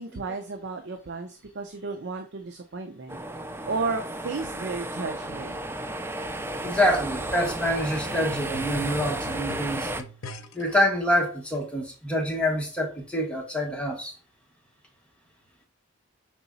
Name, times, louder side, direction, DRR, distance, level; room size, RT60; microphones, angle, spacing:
voice 1, 0.0-3.2 3.6-5.6, right 4 dB, 60° right, 0.6 m, -33 dB
sound 1, 3.1-10.0, right 1 dB, 10° right, 0.4 m, -33 dB
voice 2, 6.6-10.1 10.5-14.1, equal, 5° left, 1.4 m, -26 dB
sound 2, 8.1-10.8 11.5-11.6, left 1 dB, 75° left, 0.7 m, -44 dB
6.0 x 3.9 x 4.0 m
head